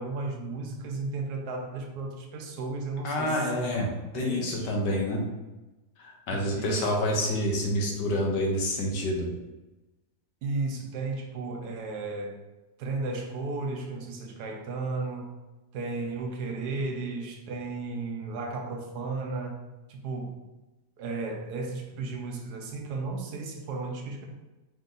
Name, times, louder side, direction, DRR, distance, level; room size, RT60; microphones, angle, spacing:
voice 1, 0.0-3.8 4.1-4.7 6.3-7.5 10.4-12.4 12.8-15.3 15.7-19.6 19.9-20.4 21.0-24.3, right 3 dB, 70° right, 2 dB, 1.2 m, -34 dB
voice 2, 3.0-3.9 4.1-5.2 6.0-9.3, left 1 dB, 80° left, 0 dB, 1.5 m, -28 dB
4.9 x 2.7 x 3.8 m, 1.1 s
omnidirectional pair, 1.8 m